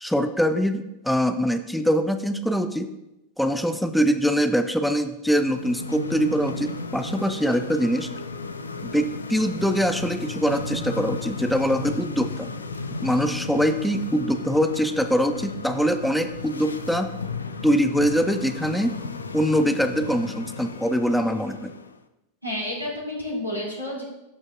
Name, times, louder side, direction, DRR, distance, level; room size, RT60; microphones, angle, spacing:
voice 1, 0.0-2.9 3.4-8.1 8.8-12.5 13.0-17.1 17.6-19.0 19.3-21.7, equal, ahead, 8 dB, 0.4 m, -23 dB
sound 1, 5.3-22.0, left 4 dB, 75° left, 0.5 m, -34 dB
voice 2, 22.4-24.0, left 1 dB, 90° right, -4 dB, 2.9 m, -30 dB
12.5 x 5.2 x 2.5 m, 0.93 s
figure-of-eight pair, 90°, 0 cm